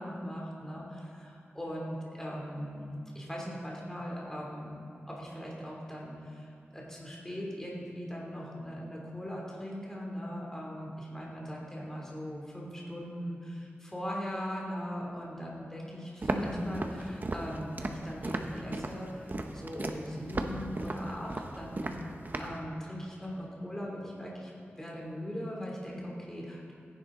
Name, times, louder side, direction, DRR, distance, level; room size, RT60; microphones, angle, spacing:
voice 1, 0.0-2.9 3.1-21.8 22.3-26.7, equal, 10° left, -3 dB, 3.0 m, -39 dB
Walk footsteps, 16.2-22.6, right 2 dB, 45° right, 1.0 m, -36 dB
16.5 x 10.5 x 3.9 m, 2.8 s
wide cardioid pair, 70°, 4 cm